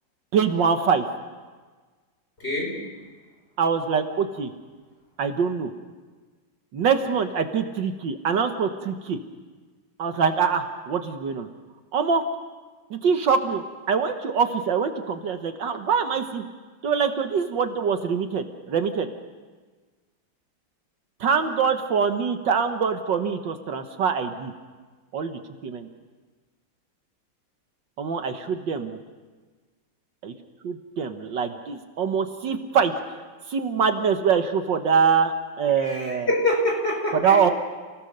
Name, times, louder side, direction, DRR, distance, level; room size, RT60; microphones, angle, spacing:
voice 1, 0.3-1.0 3.6-4.5 5.2-5.7 6.7-9.2 10.0-11.5 11.9-12.2 12.9-16.4 16.8-19.1 21.2-24.5 25.1-25.9 28.0-29.0 30.2-30.3 30.6-33.2 33.5-36.3 37.1-37.5, right 6 dB, 70° right, 7 dB, 1.8 m, -24 dB
voice 2, 2.4-2.8 35.8-37.4, left 1 dB, 30° left, 1 dB, 5.1 m, -25 dB
29.5 x 17.5 x 6.6 m, 1.4 s
omnidirectional pair, 2.1 m